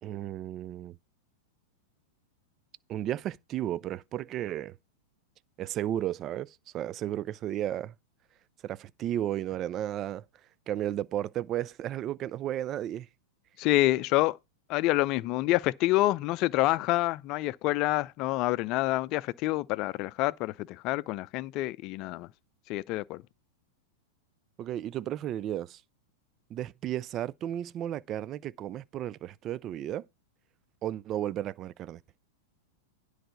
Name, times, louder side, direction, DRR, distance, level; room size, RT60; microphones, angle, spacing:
voice 1, 0.0-1.0 2.9-4.8 5.6-7.9 8.6-10.2 10.7-13.1 24.6-25.8 26.5-30.1 30.8-32.0, right 12 dB, 35° right, 0.4 m, -33 dB
voice 2, 13.6-14.4 14.7-22.3 22.7-23.2, left 18 dB, 45° left, 0.5 m, -27 dB
10.0 x 4.8 x 6.9 m
figure-of-eight pair, 95°, 0 cm